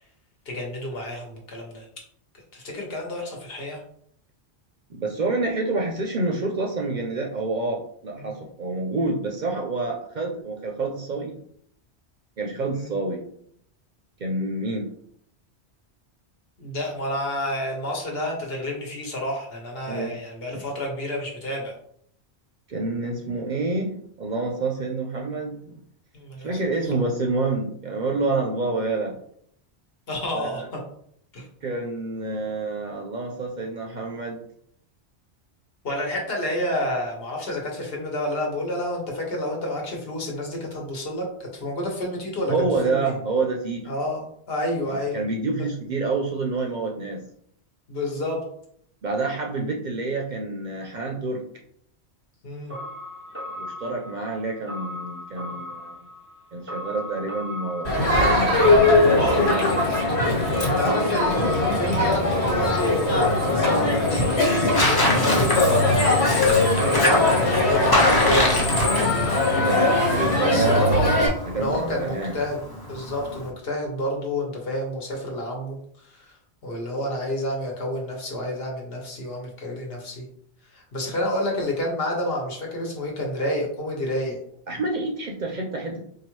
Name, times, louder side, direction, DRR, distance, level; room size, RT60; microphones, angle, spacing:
voice 1, 0.4-1.9 2.5-3.8 8.2-8.3 12.7-12.9 16.6-21.7 26.1-26.5 30.1-30.8 31.3-31.5 35.8-43.1 43.9-45.2 47.9-48.4 52.4-52.7 60.6-68.6 70.3-71.1 71.5-72.6 72.9-76.4 76.6-80.3 80.7-84.4, left 1 dB, 65° left, -1 dB, 1.2 m, -29 dB
voice 2, 4.9-11.4 12.4-13.2 14.2-14.9 19.9-20.1 22.7-25.8 26.4-29.2 30.3-30.6 31.6-34.4 42.5-43.9 44.8-47.3 49.0-51.4 53.6-56.1 56.5-59.8 60.5-62.2 69.6-71.2 71.5-72.4 84.7-86.0, right 3 dB, 55° right, 1 dB, 0.6 m, -28 dB
sound 1, 52.7-66.0, left 1 dB, 15° right, 0.6 m, -37 dB
Crowd, 57.8-71.3, left 2 dB, 90° left, 1.6 m, -21 dB
Tearing, 61.3-73.5, left 1 dB, 25° left, 0.6 m, -27 dB
4.6 x 2.3 x 3.0 m, 0.67 s
omnidirectional pair, 1.1 m